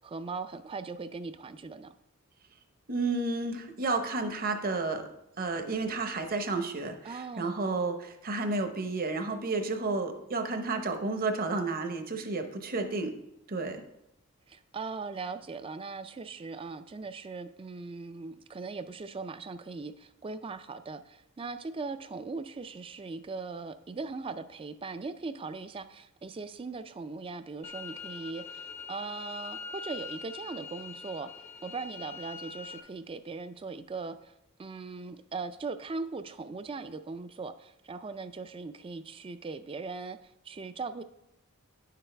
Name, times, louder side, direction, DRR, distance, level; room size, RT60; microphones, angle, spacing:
voice 1, 0.0-2.0 7.0-7.7 14.5-34.3 34.6-41.0, right 4 dB, 25° right, 11 dB, 0.3 m, -39 dB
voice 2, 2.9-5.1 5.4-13.1 13.5-13.8, right 3 dB, 40° right, 7 dB, 0.8 m, -31 dB
sound 1, 27.6-32.8, left 5 dB, 30° left, 0.6 m, -43 dB
9.8 x 6.8 x 3.3 m, 0.84 s
head